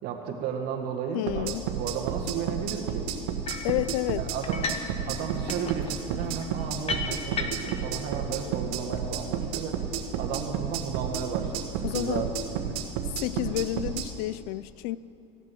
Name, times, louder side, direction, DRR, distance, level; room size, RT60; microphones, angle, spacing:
voice 1, 0.0-3.1 4.2-4.6 5.0-9.8 10.2-12.8, right 7 dB, 60° right, 1.7 m, -34 dB
voice 2, 1.1-1.7 3.6-4.2 11.8-12.3 13.2-15.0, left 17 dB, 70° left, 0.4 m, -30 dB
sound 1, 1.3-14.1, right 8 dB, 80° right, 1.4 m, -31 dB
sound 2, 3.4-3.8 4.4-4.9 5.2-7.8, left 4 dB, 30° left, 1.1 m, -34 dB
15.5 x 8.4 x 6.4 m
supercardioid pair, 110°, 19 cm